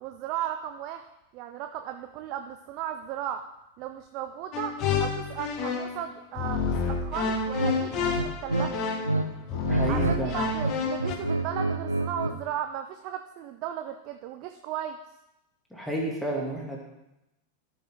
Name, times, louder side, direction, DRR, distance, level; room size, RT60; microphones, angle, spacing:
voice 1, 0.0-3.4 3.8-8.7 9.9-15.0, right 10 dB, 40° right, 7 dB, 0.6 m, -36 dB
sound 1, 4.5-6.0 6.4-11.2, left 5 dB, 35° left, 1.1 m, -29 dB
sound 2, 7.5-7.8 8.1-9.2 9.5-10.2 10.5-12.4, right 2 dB, 85° right, 0.6 m, -28 dB
voice 2, 9.7-10.4 15.7-16.8, right 2 dB, ahead, -2 dB, 1.9 m, -30 dB
13.5 x 6.0 x 3.5 m, 0.89 s
figure-of-eight pair, 90°, 0 cm